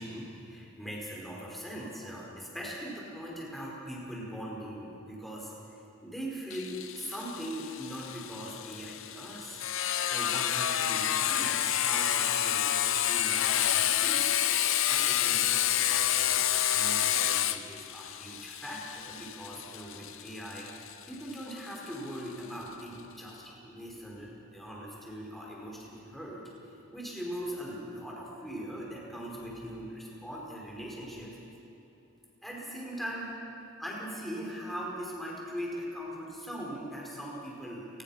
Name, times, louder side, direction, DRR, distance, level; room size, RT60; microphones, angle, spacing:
voice 1, 0.0-9.6 10.1-14.4 14.9-15.4 15.8-31.4 32.4-33.3 33.8-37.9, equal, ahead, -4 dB, 4.9 m, -41 dB
Sawing, 6.5-21.9, left 11 dB, 60° left, 0.8 m, -29 dB
28.0 x 20.0 x 5.8 m, 3.0 s
head